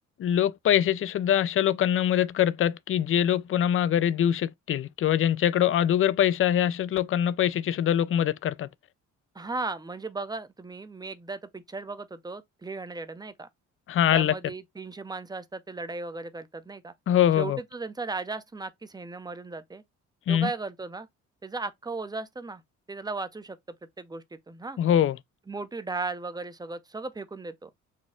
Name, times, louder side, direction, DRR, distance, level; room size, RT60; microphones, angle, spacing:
voice 1, 0.2-8.7 13.9-14.3 17.1-17.6 20.3-20.5 24.8-25.2, left 10 dB, 45° left, 0.4 m, -23 dB
voice 2, 9.3-13.5 14.1-16.9 17.4-19.8 20.3-21.1 21.4-22.6 22.9-23.6 24.0-24.8 25.5-27.7, right 3 dB, 15° right, 0.5 m, -36 dB
4.2 x 2.2 x 3.6 m
cardioid pair, 90°, 30 cm